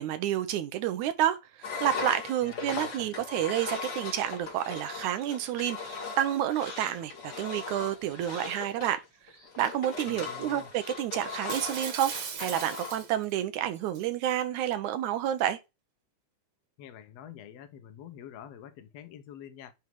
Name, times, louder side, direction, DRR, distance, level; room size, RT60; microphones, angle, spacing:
voice 1, 0.0-9.0 9.6-12.1 12.4-15.6, right 11 dB, 85° right, 2.2 m, -29 dB
Engine, 1.6-13.0, left 4 dB, 40° left, 2.5 m, -39 dB
voice 2, 2.4-3.1 10.1-10.7 16.8-19.7, left 9 dB, 65° left, 1.9 m, -47 dB
Shatter, 11.5-13.3 13.7-14.0, right 7 dB, 60° right, 2.4 m, -38 dB
9.6 x 3.4 x 4.6 m
omnidirectional pair, 3.4 m